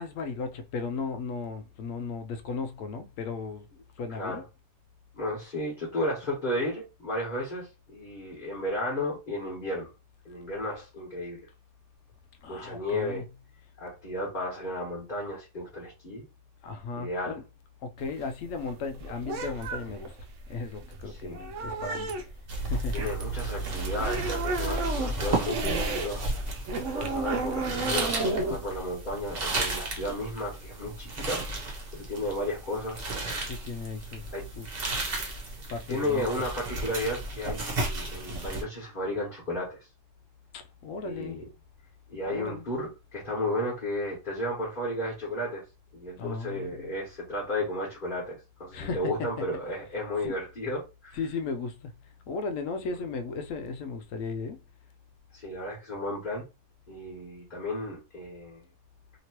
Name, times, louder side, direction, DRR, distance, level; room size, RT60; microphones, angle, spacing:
voice 1, 0.0-3.7 4.0-4.4 12.4-13.2 16.6-17.4 17.8-20.2 20.5-22.1 22.6-23.1 27.0-27.9 33.5-34.7 35.7-36.3 40.5-41.5 42.3-42.6 46.2-46.9 48.7-49.4 50.2-50.4 51.1-51.9 52.3-54.6, left 4 dB, 80° left, 1.0 m, -36 dB
voice 2, 5.1-9.9 10.2-11.4 12.5-13.2 13.8-16.2 17.0-17.4 21.1-21.4 22.9-26.2 26.9-31.4 31.9-33.0 34.3-34.4 34.9-35.1 35.9-39.9 41.0-41.4 42.1-45.6 45.9-51.2 52.8-52.9 55.3-56.5 56.9-58.6, left 1 dB, 40° left, 1.3 m, -33 dB
sound 1, 18.0-26.1 26.4-30.1, right 3 dB, 70° right, 1.0 m, -33 dB
sound 2, 22.5-38.6, right 2 dB, 50° right, 1.1 m, -33 dB
2.9 x 2.9 x 2.9 m
omnidirectional pair, 1.3 m